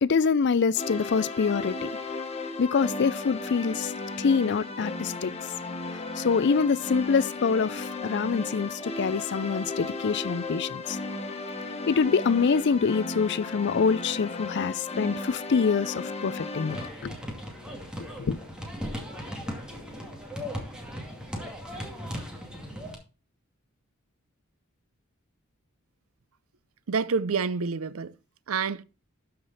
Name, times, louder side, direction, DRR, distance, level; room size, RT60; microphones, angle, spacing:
voice 1, 0.0-1.9 2.6-3.9 4.2-5.3 6.2-11.0 11.9-16.8 17.0-17.1 18.2-18.4, left 5 dB, 55° left, 0.5 m, -25 dB
sound 1, 0.8-16.9, left 3 dB, 30° left, 1.3 m, -35 dB
sound 2, 16.7-23.0, equal, 5° right, 2.3 m, -37 dB
voice 2, 26.9-28.2 28.5-28.8, right 5 dB, 80° right, 0.6 m, -28 dB
12.5 x 5.1 x 4.0 m
head